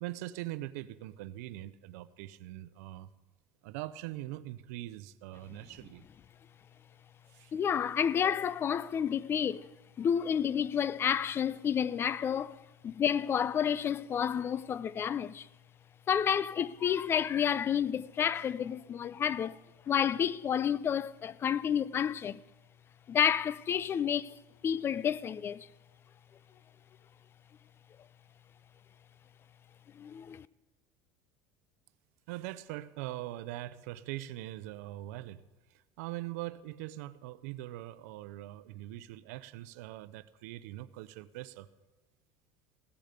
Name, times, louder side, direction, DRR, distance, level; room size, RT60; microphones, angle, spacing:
voice 1, 0.0-3.1 3.6-6.0 7.3-7.5 32.3-41.7, right 16 dB, 80° right, 0.7 m, -42 dB
voice 2, 7.5-9.7 10.0-15.5 16.1-19.6 19.9-22.4 23.1-25.7 30.0-30.5, left 8 dB, 30° left, 0.4 m, -30 dB
16.0 x 13.5 x 5.2 m
supercardioid pair, 130°, 8 cm